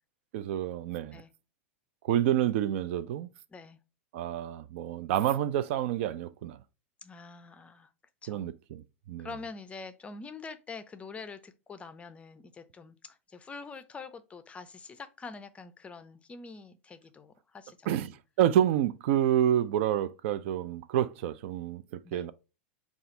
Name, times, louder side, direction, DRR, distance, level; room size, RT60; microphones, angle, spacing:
voice 1, 0.3-1.2 2.0-3.3 4.1-6.6 8.3-9.3 17.9-21.8 22.1-22.3, right 11 dB, 60° right, 0.4 m, -28 dB
voice 2, 7.0-7.9 8.2-8.5 9.2-17.9 22.0-22.3, left 4 dB, 15° left, 0.4 m, -45 dB
4.1 x 2.4 x 3.7 m
hypercardioid pair, 115°, 7 cm